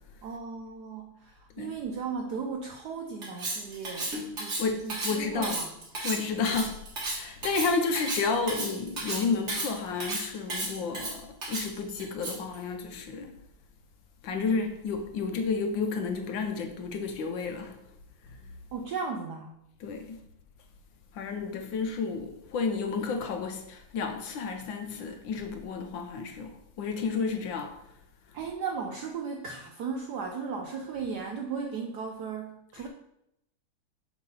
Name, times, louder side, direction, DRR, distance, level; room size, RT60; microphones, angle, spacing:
voice 1, 0.2-4.1 4.4-5.8 18.7-19.5 28.3-32.9, right 5 dB, 75° right, 2 dB, 0.9 m, -36 dB
Cutlery silverware, 3.2-12.5, right 2 dB, 35° right, 1.5 m, -34 dB
voice 2, 4.6-5.6 6.0-6.8 7.1-13.3 14.2-17.8 19.8-20.2 21.1-27.7, left 4 dB, 70° left, 5 dB, 1.3 m, -31 dB
7.2 x 3.8 x 5.4 m, 0.81 s
omnidirectional pair, 2.4 m